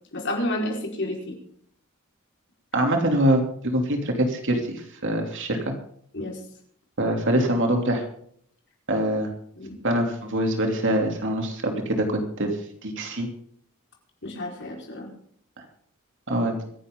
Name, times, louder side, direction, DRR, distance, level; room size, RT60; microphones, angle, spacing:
voice 1, 0.1-1.3 6.1-6.4 9.6-9.8 14.2-15.1, left 1 dB, 60° left, 0 dB, 4.8 m, -30 dB
voice 2, 2.7-5.7 7.0-8.0 8.9-9.3 9.8-12.6 12.8-13.3 15.6-15.7 16.3-16.6, right 1 dB, 60° right, 3 dB, 3.1 m, -24 dB
25.0 x 11.0 x 3.9 m, 0.64 s
head